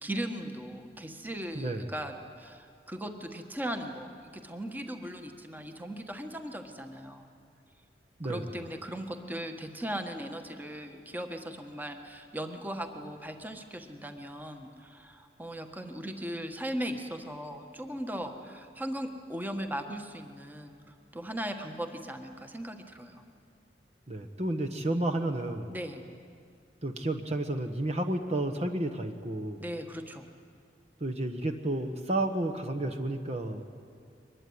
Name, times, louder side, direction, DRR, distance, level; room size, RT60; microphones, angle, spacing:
voice 1, 0.0-7.3 8.2-23.2 25.7-26.1 29.6-30.3, equal, 10° right, 5 dB, 1.5 m, -38 dB
voice 2, 1.5-1.9 8.2-8.5 24.1-25.7 26.8-29.6 31.0-33.7, right 1 dB, 40° right, 6 dB, 1.3 m, -31 dB
23.5 x 21.0 x 9.7 m, 2.3 s
head